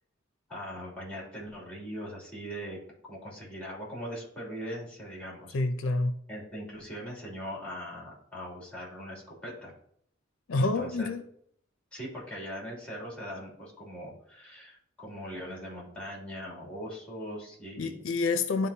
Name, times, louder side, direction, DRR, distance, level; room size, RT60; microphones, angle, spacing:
voice 1, 0.5-2.8 3.1-5.5 6.3-9.7 10.5-11.1 11.9-18.0, equal, 5° left, -3 dB, 2.8 m, -40 dB
voice 2, 5.5-6.1 10.5-11.3 17.8-18.7, left 3 dB, 80° left, 9 dB, 0.5 m, -28 dB
11.0 x 3.8 x 2.8 m, 0.66 s
head